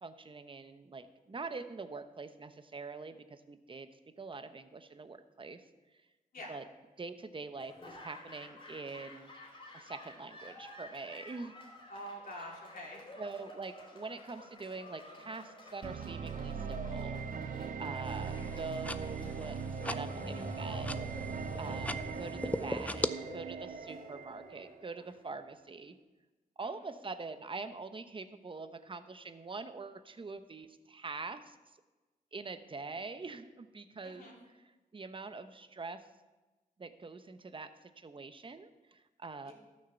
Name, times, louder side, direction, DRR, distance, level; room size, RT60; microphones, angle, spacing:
voice 1, 0.0-3.9 4.2-5.6 6.5-6.6 7.0-9.3 9.7-11.6 12.4-12.5 13.2-19.6 19.8-20.9 21.6-25.9 26.6-31.6 32.3-34.6 34.9-36.0 36.8-39.5, right 3 dB, 35° right, 10 dB, 0.9 m, -44 dB
Laughter / Applause, 7.6-25.7, left 2 dB, 35° left, 3.2 m, -53 dB
voice 2, 11.9-13.0 26.6-26.9 34.0-34.4 39.4-39.5, equal, 75° left, -3 dB, 3.3 m, -46 dB
sound 1, 15.8-24.9, right 6 dB, 60° right, 0.7 m, -40 dB
sound 2, 18.0-23.1, left 1 dB, 10° left, 0.5 m, -39 dB
13.0 x 6.5 x 6.8 m, 1.2 s
cardioid pair, 70°, 15 cm